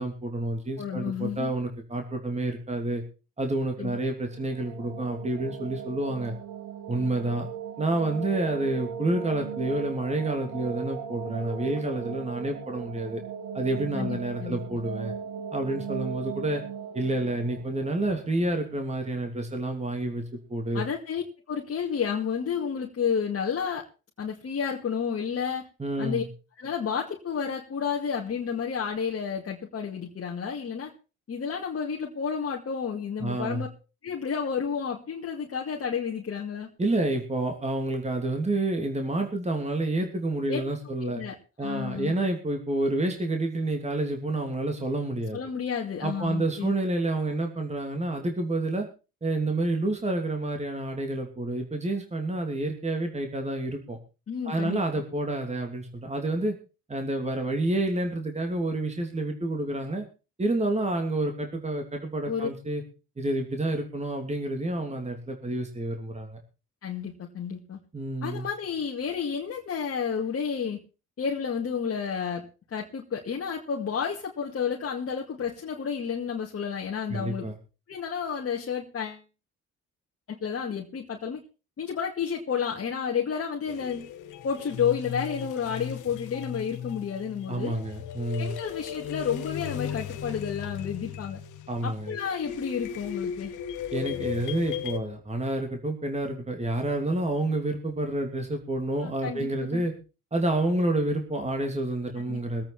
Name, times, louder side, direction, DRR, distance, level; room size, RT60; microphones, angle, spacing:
voice 1, 0.0-3.0 3.4-6.3 6.9-7.5 7.8-13.2 13.5-15.1 15.5-16.6 16.9-20.2 20.5-20.8 25.8-26.3 33.2-33.7 36.8-41.2 41.6-45.4 46.0-48.9 49.2-54.0 54.4-56.5 56.9-60.0 60.4-62.8 63.2-66.4 67.9-68.5 77.1-77.6 87.5-88.6 91.7-92.1 93.9-99.9 100.3-102.6, right 2 dB, 20° right, 4 dB, 3.0 m, -29 dB
voice 2, 0.8-1.5 3.8-4.0 13.9-14.6 20.7-23.8 24.2-25.7 26.0-26.2 26.6-30.9 31.3-33.7 34.0-36.7 40.5-40.6 41.0-41.4 41.6-42.2 45.3-46.7 54.3-54.8 62.3-62.5 66.8-67.8 68.2-70.8 71.2-77.5 77.9-79.2 80.3-81.4 81.8-84.0 84.4-87.9 88.4-91.4 91.8-93.5 99.0-99.8 102.3-102.4, left 7 dB, 50° left, -1 dB, 2.3 m, -31 dB
sound 1, 4.2-19.1, right 7 dB, 90° right, 1.7 m, -38 dB
sound 2, 83.7-95.0, left 9 dB, 90° left, 1.5 m, -36 dB
22.0 x 8.8 x 4.3 m, 0.32 s
cardioid pair, 90°, 30 cm